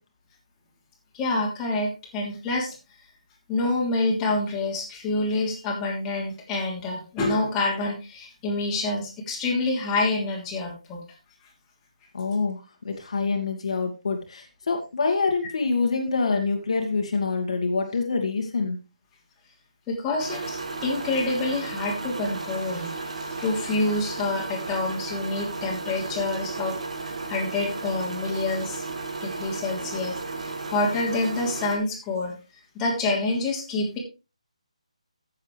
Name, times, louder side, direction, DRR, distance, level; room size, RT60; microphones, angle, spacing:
voice 1, 1.1-2.8 3.5-11.0 19.9-26.7 27.0-28.9 29.2-32.3 32.7-34.0, left 2 dB, 15° left, -3 dB, 3.1 m, -27 dB
voice 2, 12.1-18.8, left 4 dB, 60° left, 3 dB, 2.1 m, -26 dB
sound 1, 20.2-31.8, right 3 dB, 65° right, 2.3 m, -34 dB
14.5 x 7.3 x 3.3 m, 0.30 s
figure-of-eight pair, 160°, 4 cm